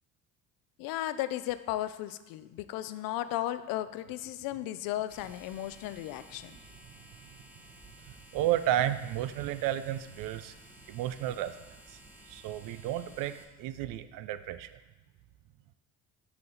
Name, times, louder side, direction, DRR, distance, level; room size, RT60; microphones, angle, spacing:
voice 1, 0.8-6.6, left 14 dB, 80° left, 13 dB, 0.5 m, -35 dB
sound 1, 5.1-13.4, equal, 5° right, 0.8 m, -54 dB
voice 2, 8.3-10.5 10.9-12.0 12.3-14.8, right 12 dB, 75° right, 13 dB, 0.5 m, -32 dB
5.8 x 5.8 x 3.9 m, 1.1 s
cardioid pair, 100°, 34 cm